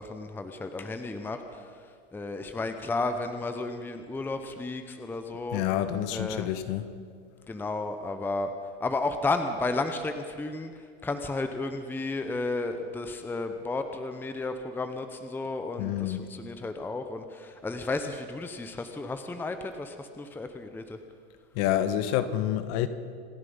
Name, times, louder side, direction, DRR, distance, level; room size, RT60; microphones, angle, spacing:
voice 1, 0.0-1.7 2.1-5.6 6.1-6.5 7.5-8.5 8.8-21.0, left 3 dB, 5° left, 0.8 m, -33 dB
voice 2, 5.5-6.9 15.8-16.3 21.5-22.9, left 11 dB, 50° left, 1.2 m, -28 dB
27.0 x 9.6 x 5.6 m
hypercardioid pair, 125°, 34 cm